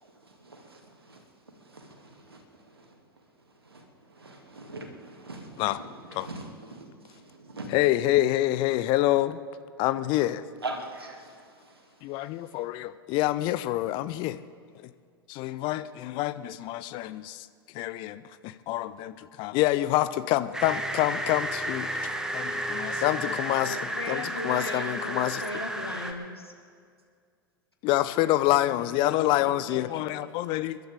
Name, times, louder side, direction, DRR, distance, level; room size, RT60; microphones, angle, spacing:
voice 1, 0.0-1.2 1.6-3.0 3.6-3.8 4.2-7.7 10.6-11.8, right 2 dB, 80° right, 3 dB, 2.1 m, -42 dB
voice 2, 7.7-9.4 9.8-10.4 12.0-14.4 15.3-17.5 17.7-21.9 22.3-23.8 24.1-25.4 27.8-30.8, left 15 dB, 40° left, 14 dB, 0.6 m, -27 dB
sound 1, 20.5-26.1, right 1 dB, 5° right, 1.3 m, -32 dB
voice 3, 23.6-26.5 28.5-30.0, left 2 dB, 90° left, 2 dB, 1.8 m, -38 dB
28.5 x 11.5 x 3.6 m, 2.2 s
figure-of-eight pair, 90°, 13 cm